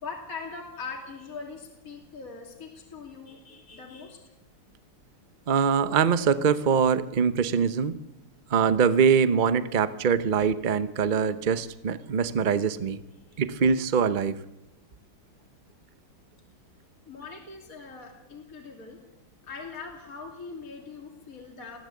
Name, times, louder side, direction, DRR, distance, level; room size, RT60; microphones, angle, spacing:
voice 1, 0.0-4.2 13.3-13.4 17.1-19.0 19.4-21.8, left 4 dB, 40° left, 1 dB, 3.2 m, -41 dB
voice 2, 5.5-8.0 8.5-13.0 13.4-14.4, right 6 dB, 70° right, 13 dB, 0.4 m, -23 dB
20.5 x 15.5 x 8.4 m, 0.91 s
omnidirectional pair, 2.2 m